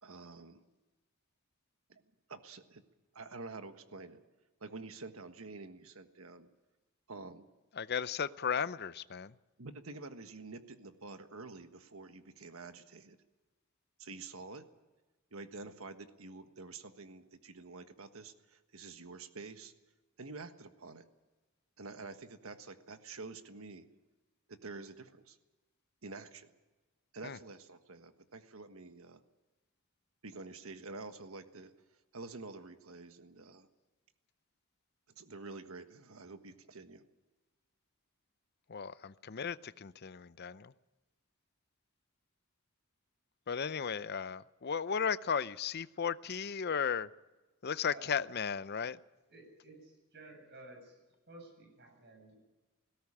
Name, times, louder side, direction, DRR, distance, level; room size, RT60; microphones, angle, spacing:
voice 1, 0.0-0.6 1.9-2.0 2.3-2.8 3.1-4.2 4.6-6.5 7.1-7.4 9.6-13.2 14.0-14.7 15.3-19.7 20.2-21.1 21.8-23.9 24.5-25.4 26.0-26.5 27.1-29.2 30.2-31.7 32.1-33.7 35.1-37.0, right 3 dB, 70° right, 8 dB, 1.4 m, -48 dB
voice 2, 7.7-9.3 27.2-27.4 38.7-40.7 43.5-47.1 47.6-49.0, left 6 dB, 45° left, 15 dB, 0.6 m, -35 dB
voice 3, 49.3-51.0 51.3-52.4, right 2 dB, 50° right, 3 dB, 7.9 m, -54 dB
19.0 x 17.0 x 8.7 m, 1.2 s
head